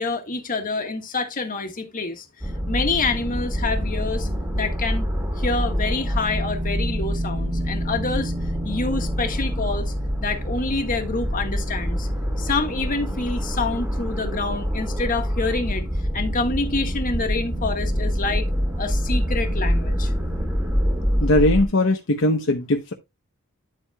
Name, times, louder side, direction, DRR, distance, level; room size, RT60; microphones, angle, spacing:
voice 1, 0.0-2.2 2.7-4.3 4.5-5.1 5.4-8.3 8.6-9.9 10.2-12.1 12.4-15.8 16.1-18.5 18.8-20.1, left 3 dB, 40° left, 1.6 m, -27 dB
sound 1, 2.4-21.7, equal, 10° right, 2.3 m, -25 dB
voice 2, 21.2-22.9, left 1 dB, 65° left, 0.9 m, -20 dB
10.5 x 7.4 x 2.3 m
head